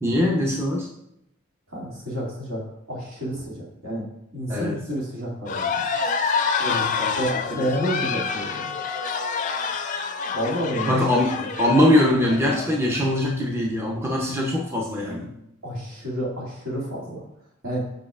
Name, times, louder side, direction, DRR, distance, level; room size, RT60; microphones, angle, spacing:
voice 1, 0.0-0.9 4.5-4.8 6.6-7.2 7.5-7.7 8.1-8.2 10.8-15.3, left 1 dB, 10° right, -1 dB, 0.6 m, -22 dB
voice 2, 1.7-2.6 2.9-4.1 4.3-5.9 7.1-8.7 10.3-11.0 11.4-11.5 15.6-17.2 17.6-17.9, equal, 75° right, -5 dB, 2.2 m, -29 dB
sound 1, 5.5-13.0, left 5 dB, 40° left, 0.4 m, -27 dB
7.5 x 5.3 x 2.4 m, 0.81 s
head